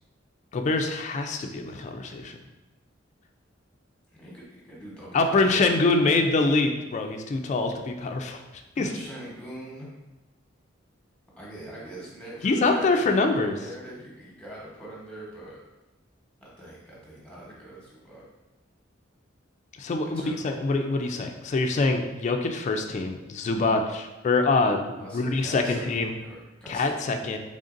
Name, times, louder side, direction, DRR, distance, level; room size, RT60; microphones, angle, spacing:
voice 1, 0.5-2.4 5.1-8.4 8.8-8.9 12.4-13.6 19.8-26.1 26.7-27.4, left 3 dB, 35° left, 4 dB, 0.3 m, -25 dB
voice 2, 4.1-6.2 8.7-9.9 11.4-13.2 13.4-15.6 16.4-18.2 20.0-20.4 25.0-27.0, right 1 dB, 5° left, -5 dB, 1.0 m, -42 dB
3.8 x 3.5 x 2.5 m, 1.0 s
head